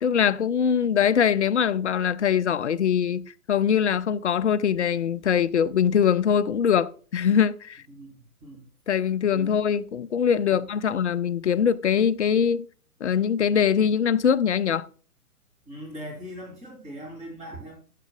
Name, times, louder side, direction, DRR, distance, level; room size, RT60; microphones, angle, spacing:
voice 1, 0.0-7.8 8.9-12.7 13.0-14.9, left 8 dB, 50° left, 0.5 m, -22 dB
voice 2, 7.9-8.7 9.3-9.6 10.5-11.1 15.7-17.7, equal, 15° right, 2.8 m, -41 dB
10.0 x 7.4 x 2.3 m
figure-of-eight pair, 120°, 46 cm